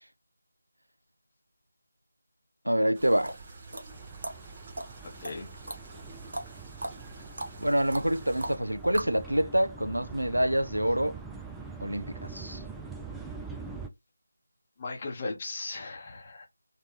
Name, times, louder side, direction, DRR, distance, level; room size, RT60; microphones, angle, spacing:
voice 1, 2.6-3.3 7.6-11.2 11.8-12.6, equal, 90° right, 0.4 m, -26 dB
sound 1, 2.9-8.6, right 3 dB, 20° right, 1.1 m, -48 dB
sound 2, 3.0-9.2, right 1 dB, 60° right, 1.0 m, -39 dB
sound 3, 3.9-13.9, right 4 dB, 5° right, 0.3 m, -44 dB
voice 2, 5.0-5.5 14.8-16.5, left 3 dB, 25° left, 1.0 m, -37 dB
3.2 x 2.9 x 3.0 m
figure-of-eight pair, 165°, 0 cm